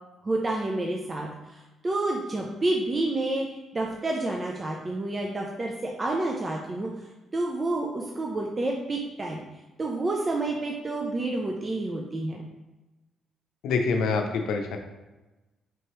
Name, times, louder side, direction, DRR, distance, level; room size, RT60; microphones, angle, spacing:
voice 1, 0.2-3.5 3.7-6.9 7.3-9.4 9.8-12.4, right 2 dB, 30° right, 0 dB, 0.5 m, -29 dB
voice 2, 13.6-14.8, left 4 dB, 80° left, 4 dB, 0.5 m, -26 dB
4.5 x 2.9 x 3.0 m, 1.1 s
cardioid pair, 90°, 0 cm